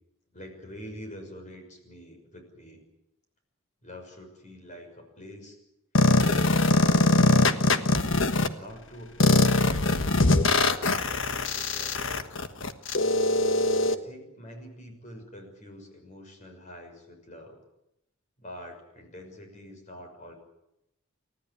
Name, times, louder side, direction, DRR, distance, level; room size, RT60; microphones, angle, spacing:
voice 1, 0.3-2.8 3.8-5.6 6.2-7.6 8.5-12.3 13.8-17.6 18.4-20.4, left 1 dB, 35° left, 4 dB, 6.2 m, -45 dB
sound 1, 5.9-8.5 9.2-13.9, left 2 dB, 60° left, 1.4 m, -22 dB
29.5 x 14.5 x 9.6 m, 0.87 s
head